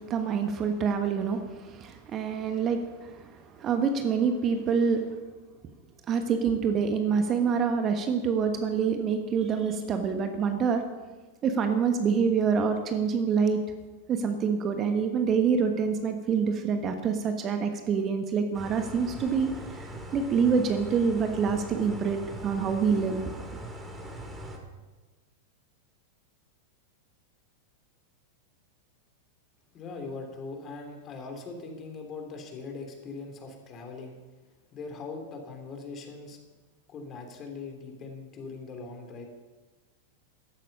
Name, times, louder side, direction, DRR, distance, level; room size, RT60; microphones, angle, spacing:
voice 1, 0.1-5.0 6.1-10.8 11.4-13.6 14.1-23.3, right 6 dB, 30° right, 6 dB, 1.3 m, -26 dB
sound 1, 18.5-24.6, right 1 dB, 10° right, 2.3 m, -41 dB
voice 2, 29.7-34.2 34.7-36.4 36.9-39.2, left 4 dB, 30° left, 4 dB, 3.0 m, -41 dB
15.0 x 12.5 x 5.5 m, 1.3 s
figure-of-eight pair, 90°, 0 cm